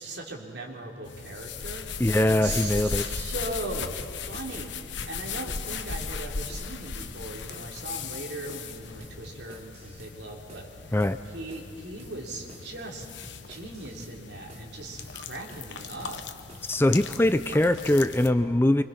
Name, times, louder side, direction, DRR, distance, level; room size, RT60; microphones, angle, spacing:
voice 1, 0.0-11.0 11.3-13.1 13.5-16.2, right 2 dB, 70° right, 0 dB, 3.5 m, -39 dB
sound 1, 1.0-18.3, left 5 dB, 90° left, 1.0 m, -37 dB
voice 2, 2.0-3.0 10.9-11.2 16.7-18.8, left 1 dB, 15° left, 11 dB, 0.5 m, -22 dB
sound 2, 2.0-2.2 2.5-2.7 3.0-3.2 3.5-3.7 4.0-4.1 4.5-4.7 5.0-6.2 6.5-6.7 7.0-7.2 7.5-7.7 8.0-8.2 8.5-8.7 9.0-10.2 10.5-10.7 11.0-11.2 11.5-11.7 12.0-12.2 12.5-12.7 13.0-14.2 14.5-14.7 15.0-15.2 15.5-15.7 16.0-16.2 16.5-16.7 17.0-18.0, right 1 dB, 35° right, 3.0 m, -50 dB
25.5 x 25.0 x 5.9 m, 2.6 s
head